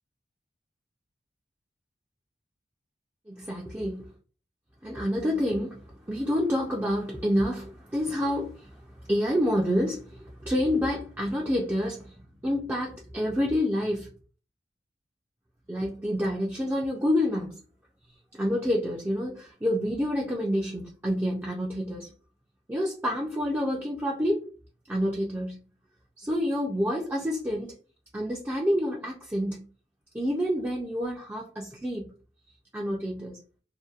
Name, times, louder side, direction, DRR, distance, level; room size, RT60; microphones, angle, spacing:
voice 1, 3.3-4.1 4.8-14.1 15.7-17.6 18.3-22.1 22.7-24.5 24.9-25.6 26.2-27.7 28.1-29.6 30.1-32.1 32.7-33.4, equal, 10° right, 0.4 m, -28 dB
2.6 x 2.1 x 2.4 m
head